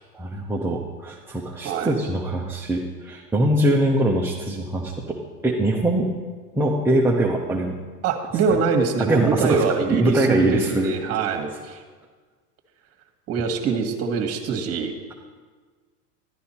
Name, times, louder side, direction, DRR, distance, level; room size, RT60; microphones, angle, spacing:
voice 1, 0.1-5.2 5.4-6.1 6.5-7.8 9.0-10.9, right 1 dB, 5° right, -3 dB, 0.7 m, -22 dB
voice 2, 1.6-1.9 8.0-11.8 13.3-14.9, right 5 dB, 30° right, 4 dB, 1.5 m, -24 dB
11.5 x 9.4 x 4.3 m, 1.5 s
hypercardioid pair, 120°, 46 cm